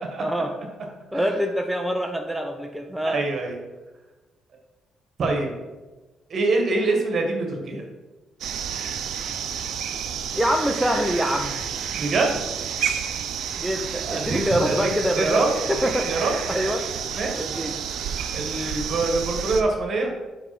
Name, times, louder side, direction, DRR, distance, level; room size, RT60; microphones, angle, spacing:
voice 1, 0.2-0.5 1.1-3.2 10.3-11.6 13.6-15.4 15.7-16.1 16.5-16.8 17.4-17.7, equal, ahead, 3 dB, 0.7 m, -25 dB
voice 2, 3.0-3.6 5.2-5.5 6.3-7.8 11.9-12.4 14.0-15.5 15.8-16.3 17.1-17.5 18.3-20.1, right 3 dB, 55° right, 2 dB, 1.9 m, -25 dB
sound 1, 8.4-19.6, right 8 dB, 75° right, 0.6 m, -30 dB
5.9 x 5.2 x 6.1 m, 1.2 s
cardioid pair, 90°, 0 cm